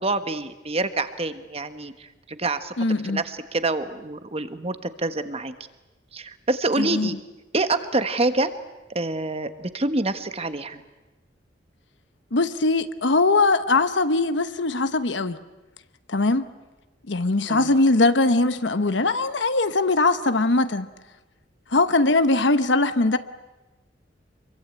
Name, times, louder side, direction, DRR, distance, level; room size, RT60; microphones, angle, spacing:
voice 1, 0.0-2.7 3.1-5.5 6.1-7.2 7.5-8.5 8.9-10.8 17.5-17.7, right 2 dB, 35° right, 1.4 m, -26 dB
voice 2, 2.8-3.2 6.8-7.1 12.3-15.4 16.1-16.5 17.1-20.9 21.7-23.2, left 2 dB, 70° left, 1.0 m, -21 dB
26.5 x 23.5 x 8.7 m
head